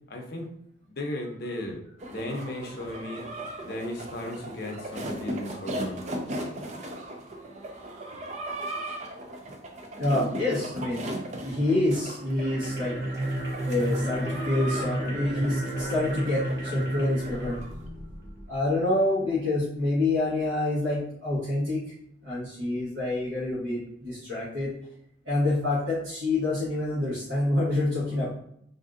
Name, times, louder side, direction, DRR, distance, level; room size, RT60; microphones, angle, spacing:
voice 1, 0.1-0.5 0.9-1.8 2.1-3.2 3.6-6.0, left 1 dB, 55° left, 1 dB, 0.6 m, -35 dB
sound 1, 2.0-17.8, right 1 dB, 35° right, 0.4 m, -38 dB
voice 2, 9.9-11.2 11.4-12.9 13.6-17.6 18.5-21.9 22.2-24.7 25.2-28.3, left 2 dB, 75° right, -9 dB, 1.1 m, -27 dB
sound 2, 12.2-18.5, right 1 dB, 55° right, 1.2 m, -31 dB
3.4 x 2.5 x 2.5 m, 0.73 s
head